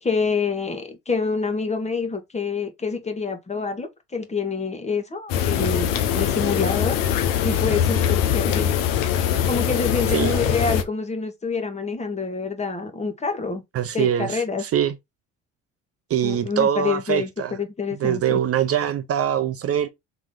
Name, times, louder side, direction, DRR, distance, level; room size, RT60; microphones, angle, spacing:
voice 1, 0.0-5.9 6.1-7.0 7.4-8.7 9.5-13.6 13.9-14.6 16.2-17.3 17.6-18.4, left 4 dB, 20° left, 1.2 m, -27 dB
sound 1, 5.3-10.8, left 9 dB, 80° left, 0.8 m, -22 dB
voice 2, 10.1-10.5 13.7-15.0 16.1-17.6 18.0-19.9, right 9 dB, 45° right, 0.6 m, -23 dB
3.9 x 3.0 x 3.7 m
supercardioid pair, 90°, 32 cm